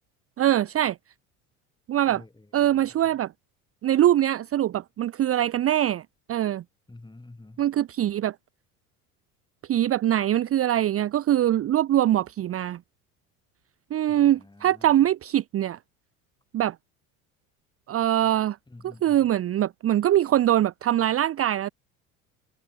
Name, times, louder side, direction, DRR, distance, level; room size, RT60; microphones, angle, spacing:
voice 1, 0.4-1.0 1.9-2.2 2.5-3.3 3.8-6.0 6.3-6.6 7.6-8.3 9.7-12.8 13.9-15.8 16.5-16.7 17.9-18.6 18.8-21.7, right 12 dB, 30° right, 0.8 m, -23 dB
voice 2, 2.1-3.2 6.9-7.6 14.0-15.0 18.7-19.3, left 2 dB, 10° left, 5.4 m, -49 dB
hypercardioid pair, 70°, 44 cm